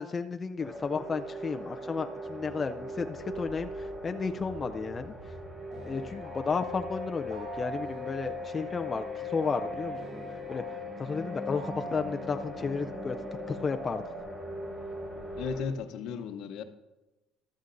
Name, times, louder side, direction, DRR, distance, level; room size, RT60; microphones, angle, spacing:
voice 1, 0.0-5.1 5.9-10.0 10.5-10.6 11.0-13.2 13.5-14.0, left 5 dB, 25° left, 7 dB, 0.4 m, -33 dB
sound 1, 0.6-15.6, right 1 dB, 20° right, 4.3 m, -42 dB
sound 2, 5.7-14.2, left 3 dB, 50° right, 4.4 m, -40 dB
voice 2, 15.4-16.6, left 6 dB, 65° left, 8 dB, 0.9 m, -35 dB
14.0 x 12.5 x 2.6 m, 1.1 s
cardioid pair, 125°, 0 cm